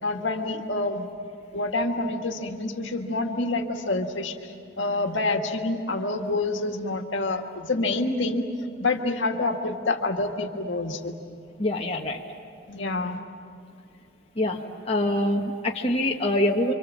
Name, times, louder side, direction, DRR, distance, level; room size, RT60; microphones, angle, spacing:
voice 1, 0.0-1.1 1.5-8.4 8.8-11.1 12.7-13.2, left 2 dB, 70° left, 3 dB, 1.8 m, -27 dB
voice 2, 11.6-12.2 14.4-14.6 14.9-16.7, left 1 dB, 30° left, -1 dB, 1.2 m, -24 dB
28.5 x 25.5 x 7.4 m, 2.4 s
head